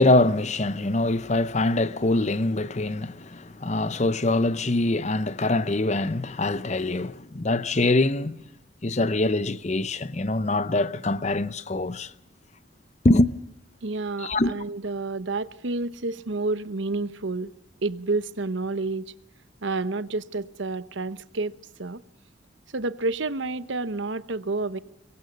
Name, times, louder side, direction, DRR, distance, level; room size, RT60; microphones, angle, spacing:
voice 1, 0.0-8.4 8.8-12.1 13.0-13.3 14.2-14.5, left 2 dB, 35° left, 0.7 m, -24 dB
voice 2, 13.8-17.5 17.8-19.1 19.6-21.5 21.8-22.0 22.7-24.8, right 3 dB, 70° right, 0.9 m, -29 dB
25.5 x 22.5 x 5.3 m
head